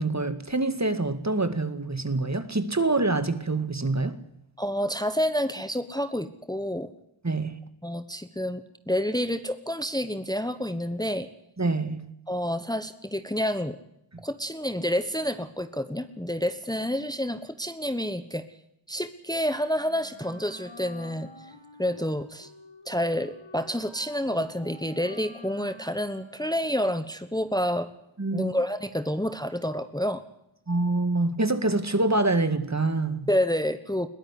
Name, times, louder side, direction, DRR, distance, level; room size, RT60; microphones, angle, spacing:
voice 1, 0.0-4.2 7.2-7.6 11.6-12.1 28.2-28.5 30.7-33.3, right 2 dB, 35° right, 2.1 m, -26 dB
voice 2, 4.6-6.9 7.8-8.6 8.9-11.3 12.3-13.8 14.2-18.4 18.9-21.5 21.8-22.5 22.9-27.9 28.3-30.2 33.3-34.1, equal, 10° left, 1.2 m, -29 dB
Wind instrument woodwind instrument, 19.8-26.9, left 2 dB, 80° left, 6.2 m, -49 dB
21.5 x 14.5 x 9.8 m
wide cardioid pair, 45°, 47 cm